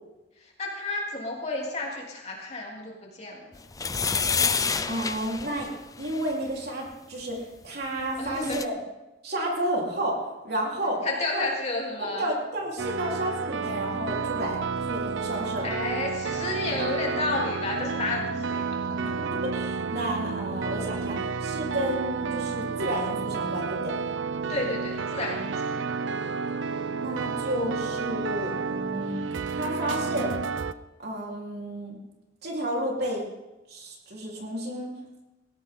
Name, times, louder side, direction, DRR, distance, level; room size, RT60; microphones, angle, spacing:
voice 1, 0.6-3.6 8.2-8.7 11.0-12.3 15.6-19.2 24.5-25.7, left 2 dB, 35° left, -2 dB, 3.5 m, -31 dB
sound 1, 3.7-6.3 8.0-8.1 8.3-8.7, left 5 dB, 20° left, 0.5 m, -28 dB
voice 2, 4.6-5.7 6.0-8.7 9.2-10.2 10.4-11.0 11.3-11.5 12.2-14.6 14.9-15.7 19.3-23.9 27.0-29.1 29.5-30.4 31.0-32.0 32.4-33.2 33.7-34.9, right 1 dB, 55° right, -2 dB, 4.1 m, -31 dB
sound 2, 12.8-30.7, right 5 dB, 70° right, 0.6 m, -31 dB
19.0 x 17.0 x 3.9 m, 1.0 s
head